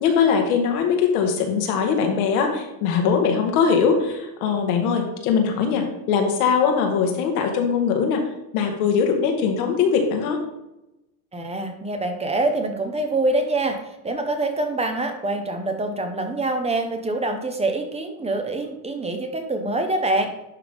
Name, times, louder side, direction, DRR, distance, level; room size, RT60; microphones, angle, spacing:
voice 1, 0.0-8.2 8.5-10.4, left 6 dB, 85° left, 3 dB, 1.7 m, -21 dB
voice 2, 11.3-20.4, right 2 dB, 15° right, 5 dB, 0.8 m, -25 dB
11.0 x 3.8 x 3.6 m, 0.92 s
supercardioid pair, 125°, 43 cm